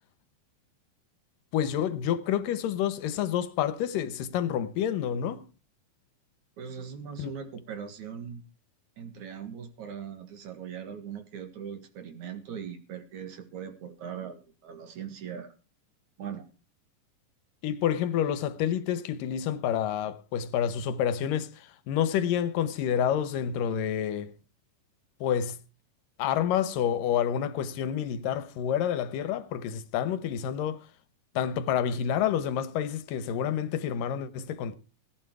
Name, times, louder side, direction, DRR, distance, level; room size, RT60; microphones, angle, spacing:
voice 1, 1.5-5.4 7.2-7.4 17.6-24.3 25.2-25.6 26.2-30.8 31.4-34.7, left 9 dB, 80° left, 2.5 m, -28 dB
voice 2, 6.6-8.4 9.0-15.5 16.2-16.5, right 7 dB, 65° right, 2.9 m, -40 dB
18.5 x 9.5 x 4.7 m
omnidirectional pair, 4.0 m